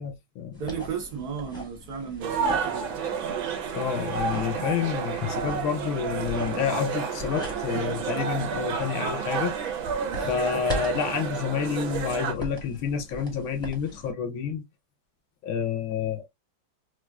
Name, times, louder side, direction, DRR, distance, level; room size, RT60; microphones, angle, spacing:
voice 1, 0.0-0.6 3.7-9.5 10.2-14.6 15.4-16.2, left 7 dB, 85° left, 1.6 m, -29 dB
sound 1, 0.5-14.1, equal, 5° left, 0.7 m, -40 dB
voice 2, 0.6-2.9, right 7 dB, 65° right, 1.2 m, -34 dB
sound 2, 2.2-12.3, right 6 dB, 80° right, 1.5 m, -30 dB
4.5 x 2.4 x 2.2 m
omnidirectional pair, 2.2 m